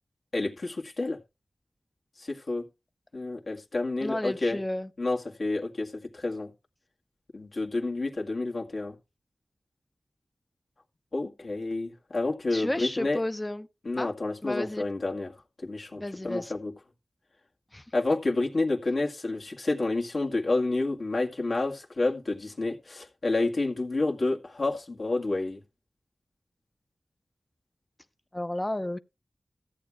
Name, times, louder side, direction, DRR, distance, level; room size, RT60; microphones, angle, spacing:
voice 1, 0.3-1.2 2.2-2.7 3.1-4.6 5.0-6.5 7.3-9.0 11.1-13.2 13.8-15.3 15.6-16.7 17.9-25.6, left 2 dB, 65° left, 1.9 m, -29 dB
voice 2, 4.0-4.9 12.5-13.7 14.0-14.1 14.4-14.9 16.0-16.5 17.7-17.8 28.3-29.0, left 1 dB, 20° left, 0.7 m, -32 dB
14.0 x 8.5 x 3.5 m
wide cardioid pair, 55°, 0 cm